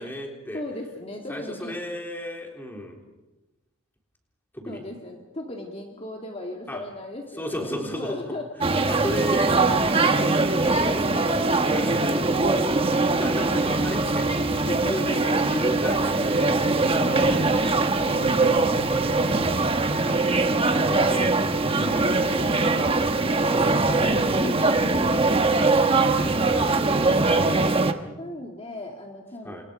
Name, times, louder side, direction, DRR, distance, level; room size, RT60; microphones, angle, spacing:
voice 1, 0.0-0.6 1.3-3.0 4.5-4.8 6.7-6.8 7.4-8.3 8.9-11.1 11.7-12.7 13.1-14.3 14.9-16.5 16.7-17.7 19.8-20.3 26.5-26.7 29.4-29.6, equal, 10° left, 1 dB, 3.7 m, -34 dB
voice 2, 0.5-1.8 4.7-8.5 11.0-11.5 14.5-15.4 16.9-17.6 17.9-19.4 20.6-21.3 21.7-26.2 26.6-26.9 27.3-27.9 28.2-29.7, left 1 dB, 30° left, 1 dB, 2.4 m, -37 dB
sound 1, 8.6-27.9, right 3 dB, 25° right, 1.3 m, -22 dB
29.5 x 27.5 x 5.1 m, 1.1 s
head